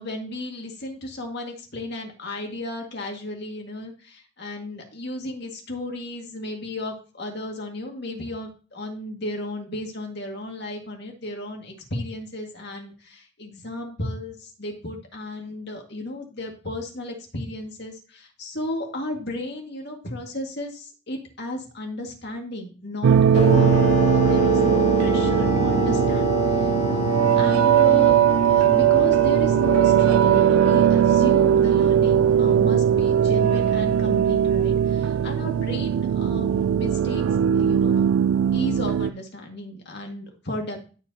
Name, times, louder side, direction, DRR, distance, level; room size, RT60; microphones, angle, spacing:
voice 1, 0.0-27.0 27.4-37.2 37.5-38.0 38.5-40.8, left 1 dB, 55° left, 2 dB, 1.9 m, -34 dB
sound 1, 23.0-39.1, right 9 dB, 85° right, 0.3 m, -19 dB
sound 2, 23.3-31.7, left 3 dB, 30° left, 1.5 m, -27 dB
14.0 x 4.9 x 2.8 m, 0.36 s
head